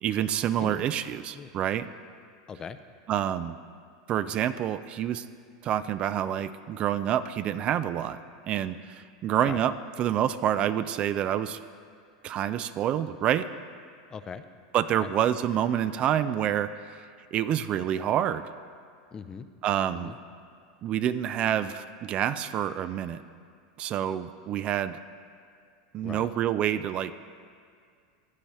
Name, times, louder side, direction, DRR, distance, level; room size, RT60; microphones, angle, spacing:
voice 1, 0.0-1.9 3.1-3.6 4.1-5.2 5.6-8.2 8.5-11.6 12.2-13.5 14.7-17.0 17.3-18.5 19.6-20.1 20.8-23.2 23.8-25.0 25.9-27.1, right 10 dB, 40° right, 14 dB, 0.3 m, -27 dB
voice 2, 14.1-14.4 15.0-15.1 19.1-19.5 19.9-20.2 26.0-26.3, left 6 dB, 25° left, 10 dB, 0.5 m, -40 dB
15.0 x 8.6 x 3.1 m, 2.2 s
hypercardioid pair, 115°, 3 cm